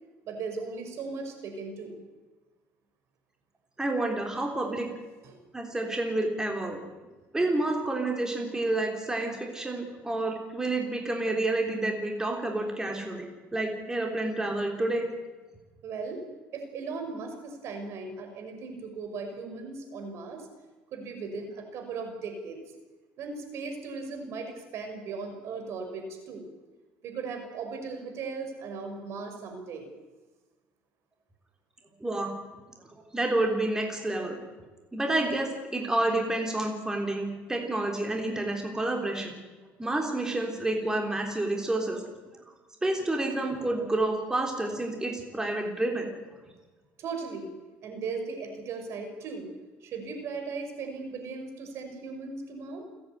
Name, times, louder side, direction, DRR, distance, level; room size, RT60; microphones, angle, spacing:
voice 1, 0.3-2.0 5.2-5.4 15.8-16.2 16.5-20.5 20.9-22.6 23.2-26.5 27.0-29.9 47.0-47.5 47.8-49.5 49.8-52.8, right 4 dB, 60° right, 5 dB, 5.4 m, -37 dB
voice 2, 3.8-4.9 5.5-6.8 7.3-15.1 32.0-32.3 33.1-34.4 34.9-39.3 39.8-42.0 42.8-46.1, right 2 dB, 10° right, 1 dB, 3.6 m, -29 dB
29.5 x 10.5 x 9.5 m, 1.2 s
cardioid pair, 110°, 5 cm